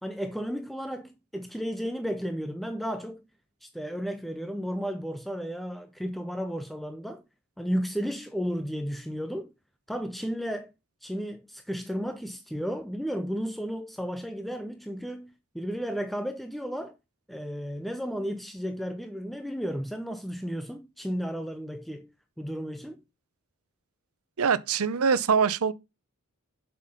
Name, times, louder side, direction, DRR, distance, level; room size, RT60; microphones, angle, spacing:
voice 1, 0.0-3.2 3.6-7.2 7.6-9.5 9.9-10.7 11.0-16.9 17.3-22.1 22.4-23.0, equal, ahead, 0.5 m, -33 dB
voice 2, 24.4-25.7, right 6 dB, 80° right, 0.6 m, -23 dB
7.5 x 5.9 x 4.9 m
head